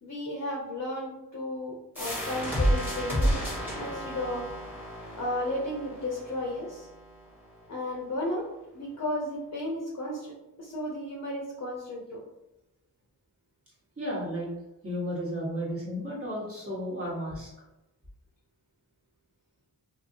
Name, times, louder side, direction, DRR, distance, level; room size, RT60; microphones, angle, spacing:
voice 1, 0.0-4.5 5.2-6.9 7.7-8.4 8.7-10.3 10.6-12.2, left 1 dB, 45° left, -2 dB, 0.6 m, -34 dB
sound 1, 2.0-7.4, equal, 5° right, 1.1 m, -31 dB
voice 2, 14.0-14.5 14.8-17.5, equal, 35° right, -6 dB, 1.2 m, -33 dB
2.7 x 2.7 x 2.6 m, 0.92 s
cardioid pair, 65°, 39 cm